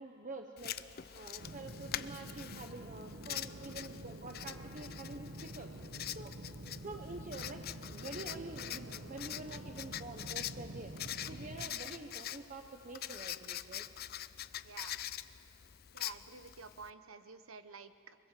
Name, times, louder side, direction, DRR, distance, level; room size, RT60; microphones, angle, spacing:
voice 1, 0.0-5.7 6.2-6.3 6.8-11.0 11.3-13.9, right 2 dB, 40° right, 4 dB, 1.0 m, -47 dB
Writing, 0.6-16.9, left 12 dB, 50° left, 0.5 m, -44 dB
sound 1, 1.4-11.7, right 1 dB, 60° right, 1.4 m, -48 dB
voice 2, 14.6-15.0 15.9-18.2, right 4 dB, 85° right, 11 dB, 1.1 m, -51 dB
24.0 x 21.5 x 7.7 m, 2.6 s
head